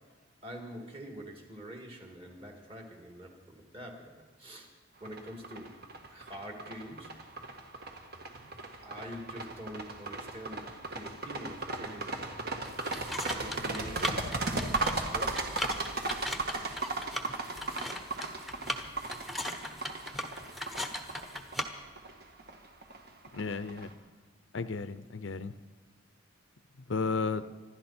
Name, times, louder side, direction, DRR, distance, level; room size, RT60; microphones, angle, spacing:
voice 1, 0.4-4.7 5.0-5.7 6.1-7.1 8.8-12.5 12.9-15.5 16.8-17.1 17.6-17.8, equal, 30° right, 2 dB, 2.5 m, -46 dB
sound 1, 5.0-23.9, right 3 dB, 50° right, 1.6 m, -37 dB
sound 2, 12.6-21.6, left 1 dB, ahead, 1.0 m, -39 dB
voice 2, 23.3-23.9 24.5-25.6 26.9-27.5, left 4 dB, 65° left, 13 dB, 0.6 m, -33 dB
26.0 x 12.0 x 4.4 m, 1.4 s
head